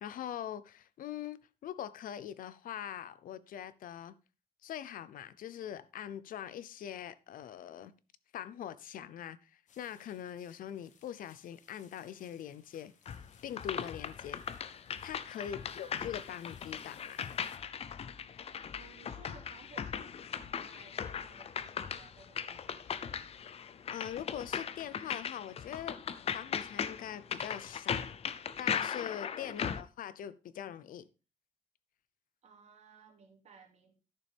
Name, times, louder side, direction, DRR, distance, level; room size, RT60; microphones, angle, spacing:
voice 1, 0.0-4.1 4.6-7.9 8.3-12.9 13.4-14.4 15.0-17.2 23.9-26.0 26.3-28.1 28.6-31.1, left 10 dB, 90° left, 0.7 m, -43 dB
sound 1, 9.7-17.6, left 5 dB, 65° left, 1.4 m, -62 dB
sound 2, 13.1-29.8, left 7 dB, 45° left, 0.6 m, -39 dB
voice 2, 18.7-23.3 29.4-29.8 32.4-34.0, right 4 dB, 55° right, 2.5 m, -59 dB
12.0 x 6.8 x 3.5 m
wide cardioid pair, 155°, 14 cm